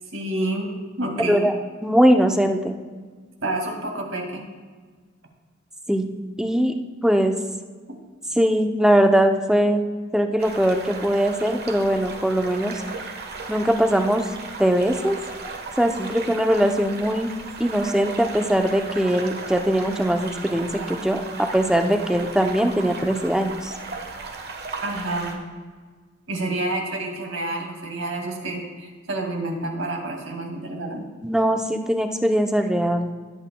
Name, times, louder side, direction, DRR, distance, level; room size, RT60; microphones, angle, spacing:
voice 1, 0.1-1.5 3.4-4.4 7.9-8.0 24.8-25.4 26.3-31.0, right 2 dB, 90° right, 2 dB, 2.1 m, -28 dB
voice 2, 1.8-2.8 5.9-6.1 6.4-6.7 7.0-7.3 8.4-9.8 10.1-12.7 13.5-14.2 14.6-15.2 15.8-17.3 17.6-23.7 31.2-33.1, equal, 5° right, 4 dB, 0.7 m, -21 dB
sound 1, 10.4-25.4, right 3 dB, 55° right, 1.3 m, -36 dB
20.5 x 8.0 x 2.3 m, 1.5 s
head